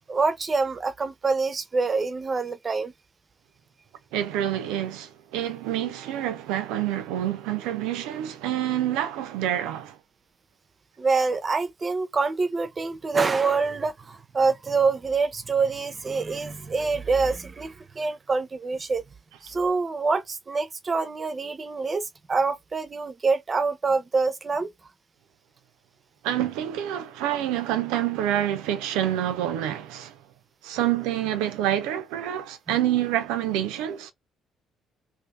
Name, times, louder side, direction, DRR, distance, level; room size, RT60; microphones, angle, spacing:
voice 1, 0.1-2.9 11.0-19.0 19.4-24.7, right 4 dB, 35° right, 0.7 m, -26 dB
voice 2, 4.1-10.0 26.2-30.1 30.6-34.1, right 11 dB, 80° right, 0.5 m, -27 dB
2.7 x 2.7 x 3.3 m
hypercardioid pair, 60°, 0 cm